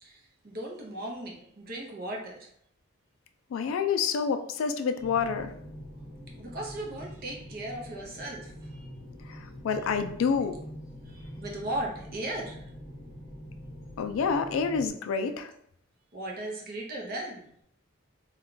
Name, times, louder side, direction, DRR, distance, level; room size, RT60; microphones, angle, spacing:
voice 1, 0.0-2.4 6.4-8.9 11.1-12.6 16.1-17.5, right 1 dB, 45° right, -1 dB, 0.6 m, -37 dB
voice 2, 3.5-5.5 9.6-10.6 14.0-15.5, left 6 dB, 75° left, 9 dB, 0.3 m, -28 dB
sound 1, 5.0-14.9, equal, 20° right, 0.8 m, -44 dB
2.3 x 2.2 x 3.7 m, 0.69 s
head